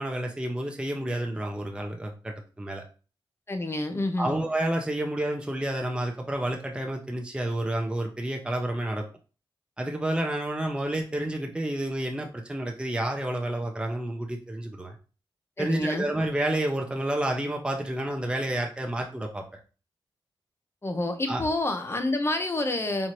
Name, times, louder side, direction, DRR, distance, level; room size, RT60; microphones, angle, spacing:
voice 1, 0.0-2.8 4.2-9.0 9.8-14.9 15.6-19.4 21.3-21.4, right 1 dB, 10° right, 2 dB, 0.7 m, -30 dB
voice 2, 3.5-4.4 15.6-16.1 20.8-23.1, left 2 dB, 30° left, 6 dB, 0.7 m, -28 dB
4.2 x 2.7 x 3.1 m, 0.35 s
cardioid pair, 75°, 9 cm